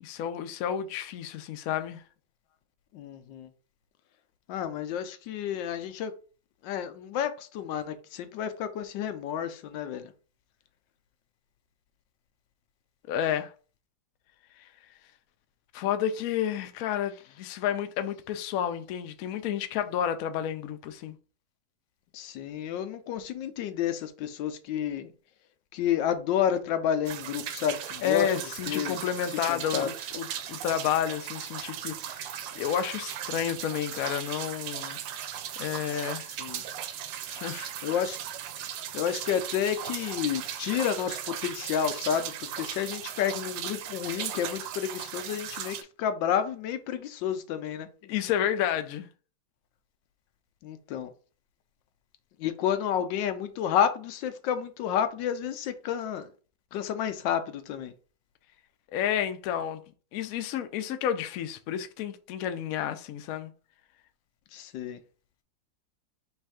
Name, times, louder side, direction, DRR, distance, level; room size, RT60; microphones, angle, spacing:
voice 1, 0.0-2.0 13.1-13.5 14.6-14.7 15.7-21.2 28.0-35.0 35.6-36.4 37.3-37.7 48.1-49.1 58.9-59.8 60.1-63.5, left 9 dB, 70° left, 0.8 m, -31 dB
voice 2, 2.9-3.5 4.5-6.1 6.6-10.1 22.1-25.1 25.7-28.3 28.7-29.0 29.3-29.9 35.9-36.0 36.4-36.6 37.8-38.2 38.9-47.9 50.6-51.1 52.4-56.3 56.7-57.9 64.5-65.0, left 9 dB, 85° left, 1.3 m, -30 dB
sound 1, 27.1-45.8, right 10 dB, 85° right, 1.3 m, -37 dB
3.4 x 3.2 x 4.8 m
omnidirectional pair, 2.0 m